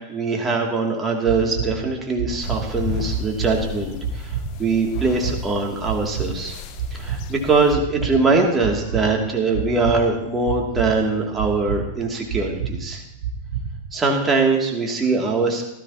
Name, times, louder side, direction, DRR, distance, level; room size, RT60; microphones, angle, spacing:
voice 1, 0.1-6.6 6.9-13.0 13.9-15.6, right 3 dB, 20° right, 0 dB, 2.6 m, -22 dB
sound 1, 1.3-14.0, right 6 dB, 55° right, 3.0 m, -30 dB
sound 2, 2.4-7.7, left 9 dB, 40° left, 0.9 m, -35 dB
18.0 x 13.5 x 2.9 m, 0.87 s
figure-of-eight pair, 90°, 0 cm